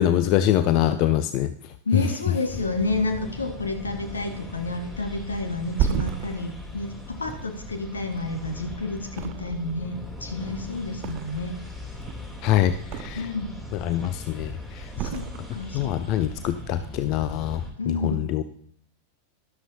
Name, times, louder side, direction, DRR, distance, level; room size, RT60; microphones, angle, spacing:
voice 1, 0.0-1.5 12.4-13.3 13.8-14.8 15.7-18.4, left 12 dB, 40° left, 12 dB, 0.4 m, -24 dB
voice 2, 1.8-9.9 10.2-11.6 13.2-13.5 15.0-16.3 17.8-18.2, left 2 dB, 75° left, 5 dB, 1.6 m, -30 dB
sound 1, 2.5-17.7, left 2 dB, 15° left, 3.1 m, -39 dB
Thump thud, 5.4-8.6 9.1-9.9 10.1-11.6 11.9-13.5 13.8-14.4 14.9-15.9 16.3-16.5, right 9 dB, 40° right, 0.5 m, -33 dB
12.5 x 12.0 x 2.8 m, 0.62 s
figure-of-eight pair, 90°, 0 cm